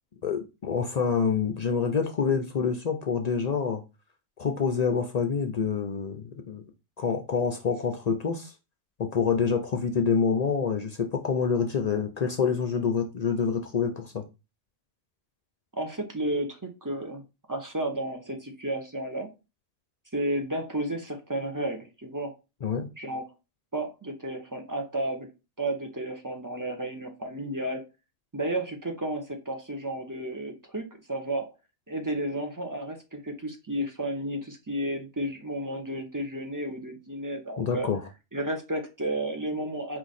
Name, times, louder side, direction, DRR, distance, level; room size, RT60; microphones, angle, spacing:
voice 1, 0.2-3.8 4.4-6.6 7.0-8.5 9.0-14.2 22.6-22.9 37.6-38.0, left 6 dB, 50° left, 0.6 m, -27 dB
voice 2, 15.7-17.2 17.5-19.3 20.1-22.3 23.0-23.3 23.7-25.3 25.6-27.8 28.3-31.5 31.9-37.9 38.3-40.0, right 1 dB, 20° right, 0.7 m, -32 dB
4.8 x 2.5 x 4.0 m
omnidirectional pair, 1.0 m